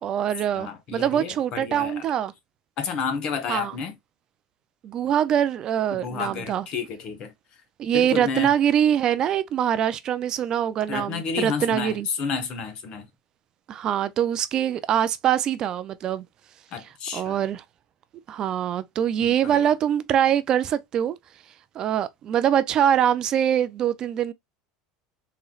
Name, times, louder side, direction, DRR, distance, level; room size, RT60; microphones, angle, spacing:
voice 1, 0.0-2.3 3.5-3.7 4.8-6.7 7.8-12.1 13.7-16.2 17.1-17.6 18.3-21.2 21.8-24.3, right 9 dB, 30° right, 0.3 m, -23 dB
voice 2, 0.5-2.0 2.8-4.0 5.9-7.3 7.9-8.5 10.9-13.1 16.7-17.4 19.2-19.7, left 6 dB, 35° left, 0.9 m, -31 dB
3.8 x 3.0 x 2.3 m
cardioid pair, 165°, 2 cm